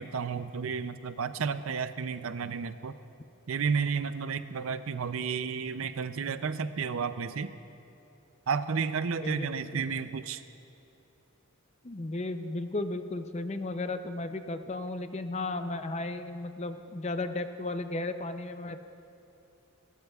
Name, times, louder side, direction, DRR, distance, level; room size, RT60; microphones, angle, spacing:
voice 1, 0.0-3.0 3.5-7.5 8.5-10.4, right 5 dB, 65° right, 12 dB, 0.5 m, -32 dB
voice 2, 9.2-9.8 11.8-18.8, left 2 dB, 30° left, 9 dB, 0.5 m, -34 dB
28.5 x 13.0 x 2.4 m, 2.9 s
head